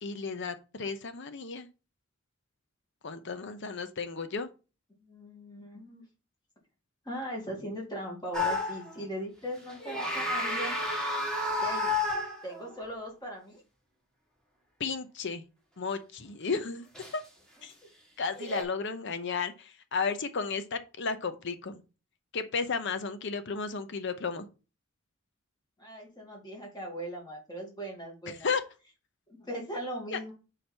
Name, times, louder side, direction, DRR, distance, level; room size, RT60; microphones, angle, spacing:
voice 1, 0.0-1.7 3.0-4.5 14.8-15.4 15.8-16.9 17.1-17.2 17.6-17.7 18.2-21.8 22.3-24.5 28.3-28.6 30.1-30.3, left 5 dB, 60° left, 0.8 m, -33 dB
voice 2, 5.0-6.0 7.0-10.8 11.6-11.9 12.4-13.6 25.8-28.5 29.4-30.3, equal, 20° left, 2.5 m, -39 dB
sound 1, 8.3-9.0 9.7-12.8 16.9-17.1 18.4-18.6, left 2 dB, 5° left, 1.8 m, -31 dB
5.5 x 5.0 x 4.5 m
head